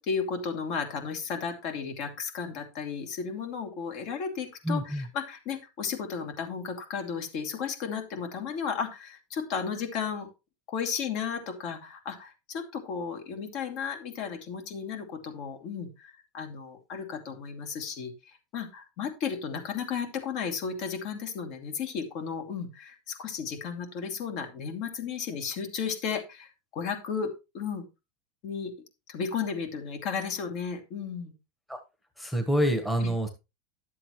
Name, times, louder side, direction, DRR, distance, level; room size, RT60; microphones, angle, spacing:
voice 1, 0.0-10.3 10.7-27.8 28.4-28.7 29.1-31.3 33.0-33.1, left 6 dB, 55° left, 4 dB, 2.8 m, -34 dB
voice 2, 4.6-5.1 31.7-31.8 32.2-33.3, equal, 5° left, 5 dB, 1.4 m, -27 dB
11.0 x 7.7 x 3.1 m, 0.26 s
supercardioid pair, 120°, 0 cm